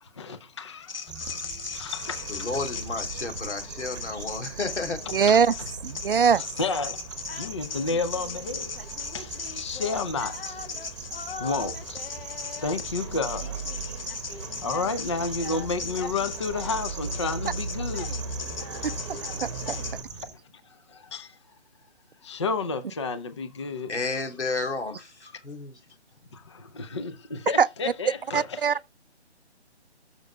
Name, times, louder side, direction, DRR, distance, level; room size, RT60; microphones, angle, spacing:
voice 1, 0.0-2.3 5.3-5.4 6.6-8.8 9.1-10.6 11.4-12.1 12.6-13.6 14.6-18.2 18.8-18.9 20.7-21.4 22.2-24.0 26.3-28.4, left 4 dB, 25° left, 0.5 m, -31 dB
sound 1, 0.8-20.0, left 5 dB, 55° left, 1.5 m, -38 dB
sound 2, 1.1-20.3, right 5 dB, 5° right, 1.2 m, -42 dB
sound 3, 2.0-20.0, right 4 dB, 25° right, 1.1 m, -40 dB
voice 2, 2.3-5.0 23.9-25.7, left 3 dB, 80° left, 3.5 m, -32 dB
voice 3, 5.1-5.5 5.8-6.4 18.8-18.9 19.4-19.8 27.6-27.7 28.3-28.9, right 6 dB, 55° right, 0.5 m, -21 dB
13.5 x 6.5 x 2.3 m
hypercardioid pair, 160°, 34 cm